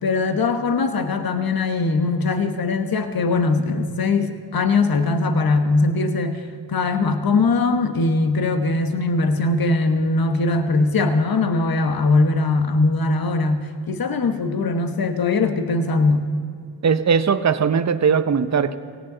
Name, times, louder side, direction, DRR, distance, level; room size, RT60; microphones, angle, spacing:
voice 1, 0.0-16.3, left 3 dB, 50° left, 8 dB, 1.4 m, -21 dB
voice 2, 16.8-18.8, right 6 dB, 35° right, 11 dB, 0.9 m, -19 dB
18.0 x 17.5 x 4.0 m, 2.2 s
supercardioid pair, 45°, 45 cm